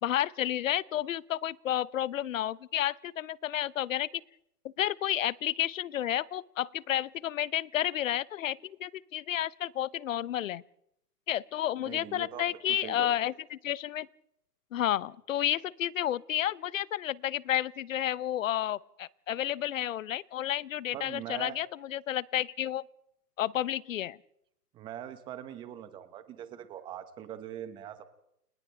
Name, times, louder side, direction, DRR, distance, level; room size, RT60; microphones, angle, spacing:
voice 1, 0.0-4.1 4.8-10.6 11.3-14.1 14.7-22.8 23.4-24.2, left 12 dB, 55° left, 21 dB, 0.8 m, -31 dB
voice 2, 11.8-13.2 20.9-21.6 24.7-28.1, right 10 dB, 10° right, 11 dB, 0.9 m, -42 dB
29.5 x 29.0 x 3.4 m, 0.77 s
hypercardioid pair, 160°, 47 cm